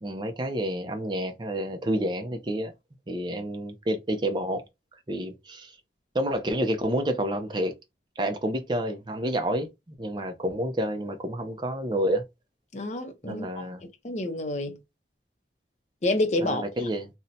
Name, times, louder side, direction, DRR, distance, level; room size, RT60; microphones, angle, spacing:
voice 1, 0.0-2.7 3.1-4.6 5.1-5.8 6.1-7.8 8.2-9.7 10.0-12.2 13.2-13.8 16.4-17.1, right 1 dB, 25° right, 0.5 m, -29 dB
voice 2, 12.7-13.7 14.0-14.8 16.0-16.6, left 2 dB, 40° left, 0.6 m, -28 dB
2.6 x 2.1 x 4.0 m
head